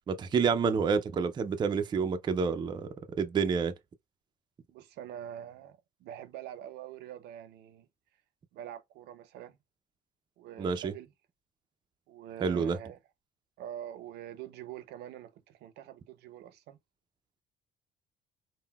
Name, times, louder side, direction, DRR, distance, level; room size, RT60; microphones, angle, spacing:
voice 1, 0.1-2.9 3.2-3.7 10.6-10.9 12.4-12.8, right 5 dB, 25° right, 0.4 m, -28 dB
voice 2, 4.7-7.9 8.5-9.6 10.4-11.1 12.1-13.0 13.6-16.8, right 10 dB, 80° right, 0.6 m, -45 dB
3.7 x 2.1 x 2.2 m
cardioid pair, 110°, 17 cm